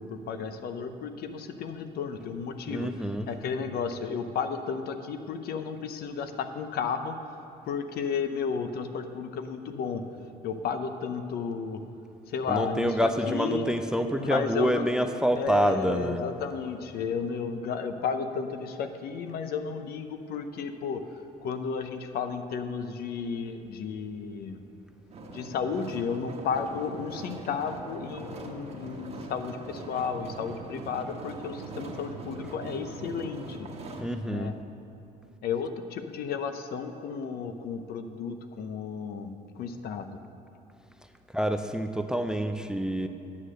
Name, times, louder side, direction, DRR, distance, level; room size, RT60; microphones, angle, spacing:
voice 1, 0.0-2.9 3.3-7.4 7.7-10.0 10.4-11.8 12.3-13.7 14.1-24.6 25.3-33.7 34.3-34.5 35.4-40.2, left 6 dB, 65° left, 8 dB, 0.8 m, -33 dB
voice 2, 2.7-3.3 12.5-16.2 34.0-34.5 41.3-43.1, equal, 5° right, 7 dB, 0.4 m, -27 dB
sound 1, 25.1-34.0, right 2 dB, 40° right, 1.2 m, -41 dB
9.8 x 6.5 x 6.5 m, 2.9 s
cardioid pair, 110°, 17 cm